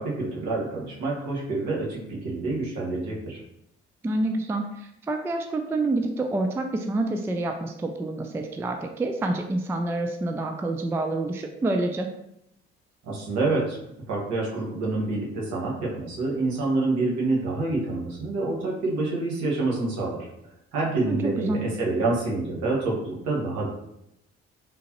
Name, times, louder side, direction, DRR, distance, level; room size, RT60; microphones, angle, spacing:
voice 1, 0.0-3.4 13.0-13.8 14.1-20.3 20.7-23.7, right 2 dB, 60° right, -4 dB, 1.3 m, -27 dB
voice 2, 4.0-12.1 21.1-21.6, right 2 dB, 10° right, 4 dB, 0.3 m, -27 dB
3.6 x 2.9 x 2.9 m, 0.82 s
figure-of-eight pair, 45°, 33 cm